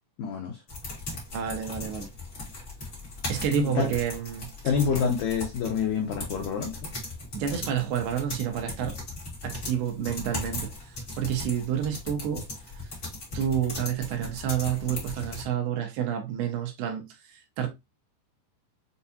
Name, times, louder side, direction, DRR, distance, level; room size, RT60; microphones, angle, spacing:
voice 1, 0.2-0.6 3.6-3.9 4.6-6.9, left 7 dB, 90° left, 1.8 m, -27 dB
sound 1, 0.7-15.4, left 2 dB, 50° left, 0.9 m, -38 dB
voice 2, 1.3-2.1 3.3-4.5 4.9-5.1 7.3-9.0 9.4-10.7 11.2-12.5 13.3-17.7, right 9 dB, 75° right, 2.8 m, -29 dB
6.8 x 2.4 x 2.6 m
omnidirectional pair, 4.8 m